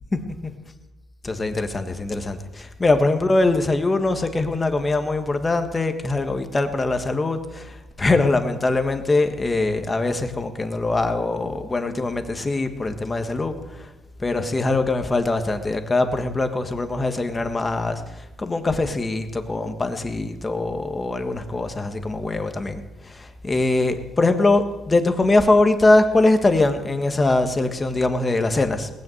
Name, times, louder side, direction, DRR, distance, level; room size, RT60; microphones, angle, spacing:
voice 1, 0.1-0.5 1.2-13.9 14.2-28.9, left 2 dB, 20° left, 7 dB, 1.4 m, -22 dB
19.0 x 9.4 x 7.8 m, 1.1 s
cardioid pair, 135°, 0 cm